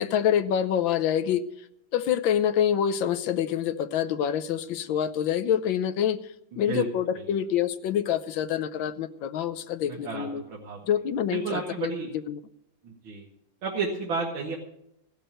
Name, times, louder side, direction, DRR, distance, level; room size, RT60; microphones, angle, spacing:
voice 1, 0.0-1.4 1.9-6.2 6.6-10.4 10.9-11.9 12.3-12.4, left 9 dB, 80° left, 11 dB, 1.5 m, -26 dB
voice 2, 6.5-6.9 7.1-7.3 9.8-10.8 11.3-12.1 12.8-13.3 13.6-14.6, right 4 dB, 85° right, -3 dB, 2.5 m, -32 dB
15.5 x 6.8 x 8.8 m, 0.80 s
omnidirectional pair, 2.2 m